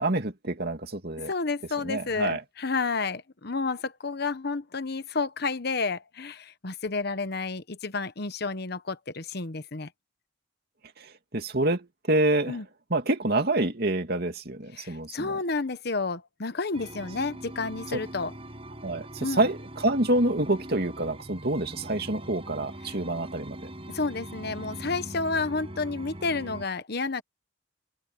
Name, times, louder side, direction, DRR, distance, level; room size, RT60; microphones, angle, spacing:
voice 1, 0.0-1.3 1.8-2.4 11.3-12.6 12.9-15.4 18.8-23.7, right 2 dB, 55° right, 2.6 m, -27 dB
voice 2, 1.2-9.9 12.5-12.6 14.7-18.3 19.2-19.5 22.8-23.0 23.9-27.2, left 4 dB, 55° left, 1.1 m, -31 dB
sound 1, 16.7-26.7, right 1 dB, 30° right, 7.4 m, -41 dB
head